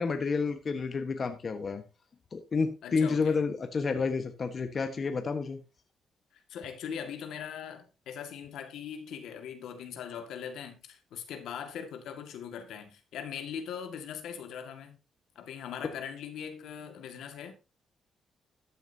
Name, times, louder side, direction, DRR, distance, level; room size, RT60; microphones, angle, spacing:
voice 1, 0.0-1.8 2.3-5.6, left 4 dB, 45° left, 1.3 m, -30 dB
voice 2, 2.8-3.4 6.3-15.0 15.4-17.5, left 8 dB, 80° left, 1.9 m, -40 dB
14.0 x 9.1 x 2.8 m
cardioid pair, 75°, 0 cm